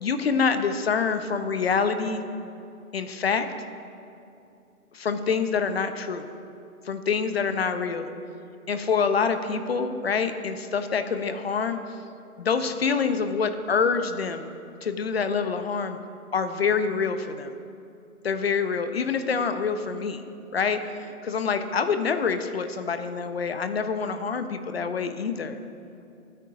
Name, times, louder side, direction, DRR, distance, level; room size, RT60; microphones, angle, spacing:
voice 1, 0.0-2.2 2.9-3.5 4.9-6.3 6.9-8.1 8.7-11.8 12.4-14.5 14.8-16.0 16.3-17.5 18.2-20.2 20.5-25.6, left 5 dB, 45° left, 9 dB, 0.9 m, -26 dB
22.5 x 9.2 x 5.1 m, 2.6 s
hypercardioid pair, 160°, 43 cm